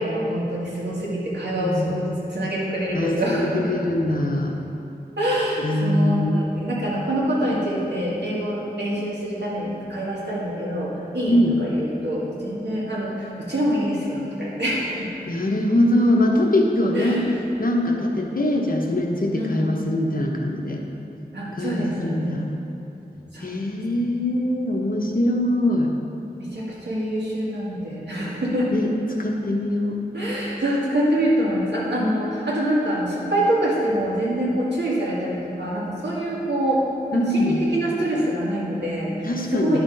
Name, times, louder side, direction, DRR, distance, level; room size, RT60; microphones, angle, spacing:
voice 1, 0.0-3.7 5.2-15.1 16.9-17.3 19.4-19.8 21.3-22.4 23.3-23.5 23.9-24.0 25.0-25.1 26.4-28.7 30.1-36.8 37.1-39.8, right 1 dB, 90° right, -6 dB, 2.0 m, -25 dB
voice 2, 1.6-1.9 2.9-3.4 3.7-4.6 5.6-6.4 11.3-11.6 15.3-17.2 17.6-20.8 21.6-22.5 23.4-25.9 28.7-28.9 29.2-30.0 37.1-37.6 39.2-39.8, left 1 dB, 55° left, 1 dB, 1.0 m, -22 dB
10.5 x 6.1 x 3.9 m, 2.9 s
wide cardioid pair, 60°, 17 cm